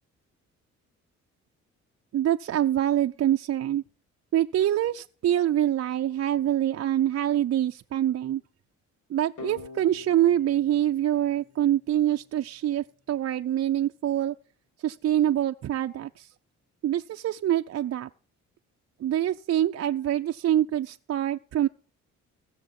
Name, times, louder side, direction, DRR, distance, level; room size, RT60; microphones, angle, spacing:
voice 1, 2.1-3.8 4.3-8.4 9.1-14.3 14.8-16.3 16.8-18.1 19.0-21.7, right 12 dB, 50° right, 0.5 m, -25 dB
sound 1, 9.4-12.2, left 4 dB, 90° left, 2.1 m, -45 dB
17.0 x 6.6 x 5.4 m
cardioid pair, 90°, 30 cm